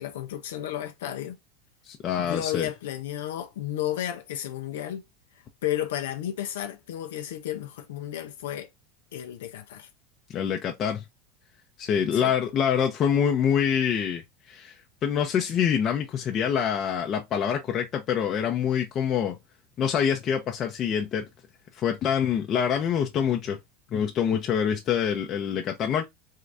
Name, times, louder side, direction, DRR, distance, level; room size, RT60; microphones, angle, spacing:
voice 1, 0.0-1.4 2.2-5.0 5.6-8.7 9.1-9.9 12.1-12.4, left 12 dB, 90° left, 0.6 m, -33 dB
voice 2, 1.9-2.7 10.3-11.0 11.8-14.2 14.5-14.7 15.0-19.4 19.8-21.3 21.8-23.6 23.9-26.1, left 8 dB, 35° left, 0.7 m, -25 dB
3.7 x 2.5 x 3.3 m
supercardioid pair, 125°, 0 cm